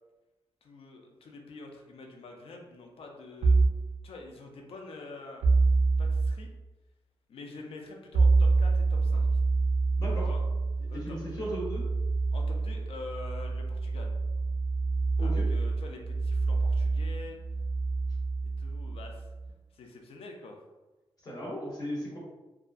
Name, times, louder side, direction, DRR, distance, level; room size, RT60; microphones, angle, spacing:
voice 1, 0.6-3.6 4.0-5.5 6.0-6.5 7.3-9.3 10.2-10.4 10.9-11.2 12.3-14.1 15.2-17.4 18.6-19.3 19.7-20.6, left 3 dB, 75° left, 2 dB, 0.4 m, -46 dB
sound 1, 3.4-3.9 5.4-6.4 8.1-19.5, right 3 dB, 75° right, 0.4 m, -27 dB
voice 2, 10.9-11.8 15.2-15.5 21.2-22.2, equal, 40° left, -5 dB, 0.7 m, -36 dB
2.7 x 2.3 x 2.4 m, 1.1 s
wide cardioid pair, 155°, 10 cm